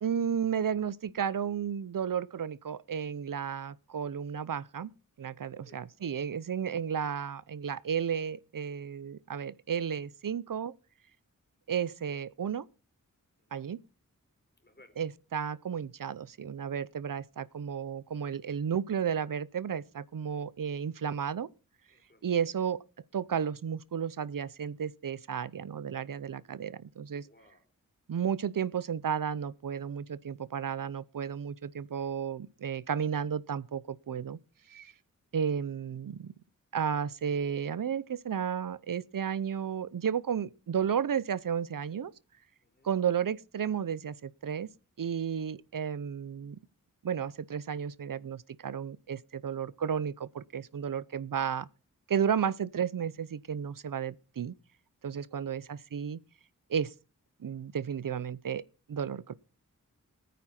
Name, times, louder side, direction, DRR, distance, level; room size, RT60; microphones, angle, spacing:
voice 1, 0.0-4.9 5.2-10.7 11.7-12.6 13.5-13.8 15.0-21.5 22.2-22.8 23.1-27.3 28.1-34.4 34.7-34.9 35.3-36.3 36.7-42.1 42.8-44.7 45.0-46.6 47.0-51.7 52.1-54.5 55.0-56.2 56.7-56.9 57.4-58.6 58.9-59.4, right 7 dB, 75° right, 0.7 m, -33 dB
voice 2, 5.5-5.9 13.4-13.7 14.6-15.1 21.9-22.4 27.2-27.6 42.6-42.9 55.3-55.7, left 2 dB, 30° left, 4.0 m, -61 dB
20.0 x 9.5 x 4.3 m
wide cardioid pair, 80°, 33 cm